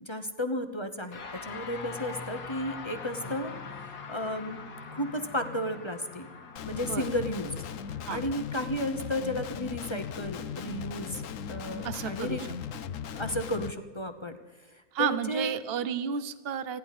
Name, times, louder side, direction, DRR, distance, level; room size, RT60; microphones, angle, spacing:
voice 1, 0.0-3.5 3.8-4.6 4.9-6.3 6.6-7.5 8.1-11.2 11.5-12.4 13.1-14.4 14.7-15.6, left 1 dB, 20° left, 7 dB, 0.9 m, -33 dB
sound 1, 1.1-10.6, left 5 dB, 80° left, 2.2 m, -43 dB
Guitar, 6.6-13.7, left 8 dB, 60° left, 1.0 m, -38 dB
voice 2, 6.7-7.1 8.1-8.2 11.8-12.5 14.9-16.8, right 8 dB, 45° right, 13 dB, 0.9 m, -32 dB
29.5 x 11.0 x 4.2 m, 1.3 s
omnidirectional pair, 1.7 m